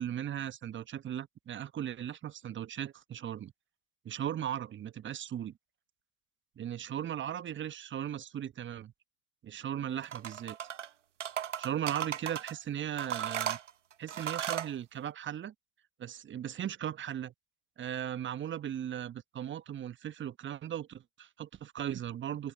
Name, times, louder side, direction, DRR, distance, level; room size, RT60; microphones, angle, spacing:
voice 1, 0.0-3.5 4.0-5.6 6.6-8.9 9.4-10.6 11.6-13.6 14.0-15.5 16.0-17.3 17.8-22.5, right 10 dB, 30° right, 1.2 m, -37 dB
sound 1, 10.0-10.9 11.2-12.5 13.0-14.7, right 9 dB, 90° right, 1.1 m, -36 dB
open air
hypercardioid pair, 70°, 36 cm